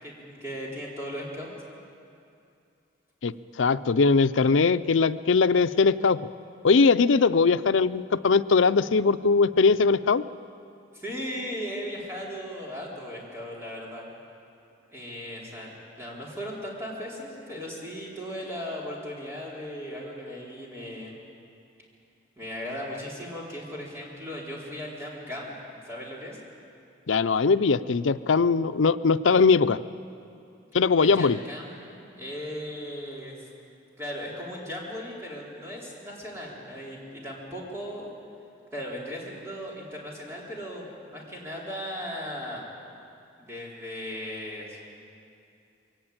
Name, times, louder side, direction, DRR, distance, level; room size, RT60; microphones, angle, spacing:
voice 1, 0.0-1.5 10.9-14.0 14.9-21.1 22.4-26.4 31.0-33.4 34.0-38.2 38.7-42.6 43.4-44.8, equal, 15° right, -5 dB, 4.3 m, -37 dB
voice 2, 3.2-6.2 6.6-10.2 27.1-29.8 30.7-31.4, left 4 dB, 90° left, 13 dB, 0.5 m, -21 dB
22.5 x 18.0 x 8.7 m, 2.6 s
head